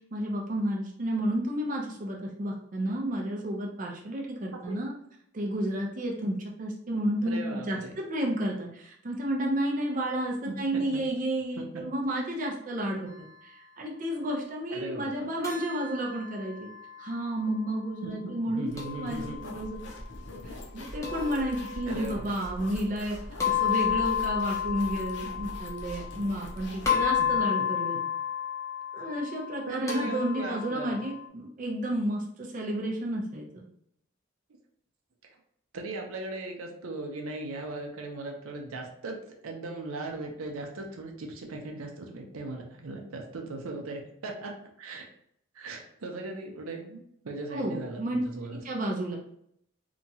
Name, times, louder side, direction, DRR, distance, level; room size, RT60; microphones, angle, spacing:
voice 1, 0.1-4.9 5.3-13.1 13.4-16.7 17.0-19.8 20.4-23.2 23.4-28.0 28.9-33.6 47.5-48.2 48.6-49.2, right 1 dB, 40° right, -1 dB, 0.4 m, -31 dB
voice 2, 7.2-7.9 10.4-11.0 11.5-11.8 14.7-15.3 18.0-19.4 21.9-22.3 29.7-31.0 35.7-45.1 45.5-48.6, right 2 dB, 90° right, 2 dB, 0.6 m, -38 dB
sound 1, 15.4-17.5 18.8-19.8 21.0-22.2 23.4-26.5 26.9-31.3, left 9 dB, 15° left, 0.5 m, -32 dB
sound 2, 18.7-27.5, left 1 dB, 55° left, 0.6 m, -42 dB
2.9 x 2.3 x 2.7 m, 0.72 s
head